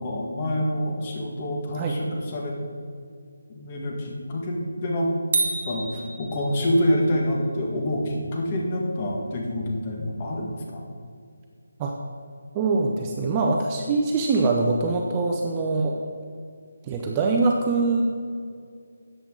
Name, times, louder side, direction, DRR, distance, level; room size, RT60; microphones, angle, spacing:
voice 1, 0.0-2.6 3.5-5.1 5.7-10.8, left 1 dB, 25° left, -1 dB, 1.6 m, -27 dB
sound 1, 5.3-6.9, right 3 dB, 45° right, 1.2 m, -28 dB
voice 2, 12.5-16.0 16.8-18.0, right 3 dB, 15° right, 0 dB, 0.6 m, -23 dB
13.5 x 8.9 x 3.8 m, 2.2 s
figure-of-eight pair, 170°, 0 cm